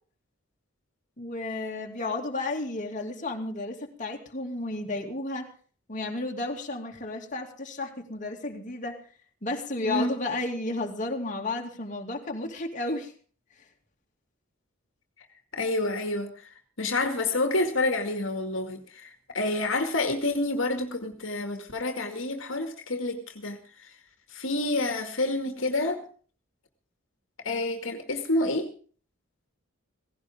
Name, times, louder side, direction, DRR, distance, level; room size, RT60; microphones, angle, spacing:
voice 1, 1.2-5.5 5.9-9.0 9.4-13.1, left 2 dB, 40° left, 1 dB, 2.5 m, -32 dB
voice 2, 15.5-16.3 16.8-23.9 24.3-26.0 27.4-28.7, left 2 dB, 70° left, 5 dB, 2.2 m, -28 dB
17.5 x 16.5 x 3.7 m, 0.41 s
head